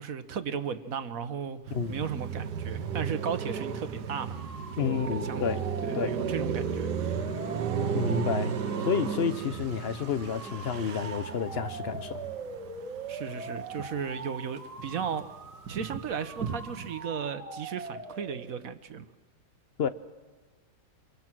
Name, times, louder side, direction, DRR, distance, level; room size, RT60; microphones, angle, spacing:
voice 1, 0.0-4.4 4.8-5.4 5.8-7.2 13.1-15.3 15.7-19.0, right 7 dB, 55° right, 10 dB, 1.4 m, -35 dB
Car passing by, 1.7-14.1 14.5-17.0, right 6 dB, 70° right, 1.6 m, -34 dB
sound 1, 4.0-18.7, right 3 dB, 20° right, 1.4 m, -42 dB
voice 2, 4.8-5.6 5.9-6.1 7.9-12.2 19.8-19.9, left 7 dB, 50° left, 12 dB, 0.7 m, -30 dB
27.0 x 23.0 x 6.1 m, 1.4 s
omnidirectional pair, 1.9 m